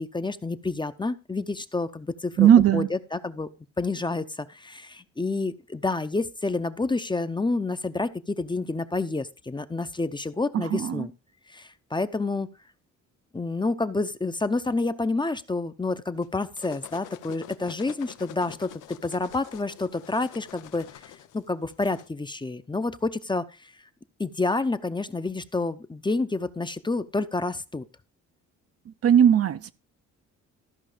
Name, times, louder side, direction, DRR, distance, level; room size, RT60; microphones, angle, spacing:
voice 1, 0.0-3.5 3.8-11.1 11.5-12.5 13.3-23.7 24.2-27.8, left 3 dB, 15° left, 0.7 m, -29 dB
voice 2, 2.4-2.9 10.5-11.1 29.0-29.7, right 9 dB, 50° right, 0.7 m, -18 dB
sound 1, 16.2-22.1, left 12 dB, 90° left, 0.8 m, -46 dB
14.0 x 5.3 x 5.0 m
cardioid pair, 90°, 30 cm